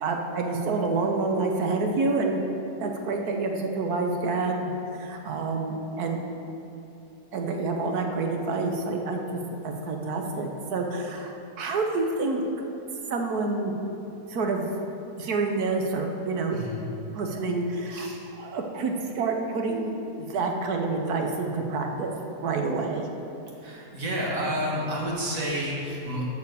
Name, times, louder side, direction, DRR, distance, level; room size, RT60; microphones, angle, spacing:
voice 1, 0.0-2.4 2.8-6.2 7.3-12.4 13.1-13.7 14.3-14.7 15.2-16.6 17.1-18.1 18.4-19.9 20.2-22.1 22.4-23.1, right 3 dB, 75° right, 3 dB, 1.4 m, -28 dB
voice 2, 16.5-16.8 17.9-18.2 23.6-26.3, equal, 60° right, -4 dB, 2.1 m, -30 dB
7.1 x 7.1 x 6.7 m, 2.9 s
omnidirectional pair, 1.7 m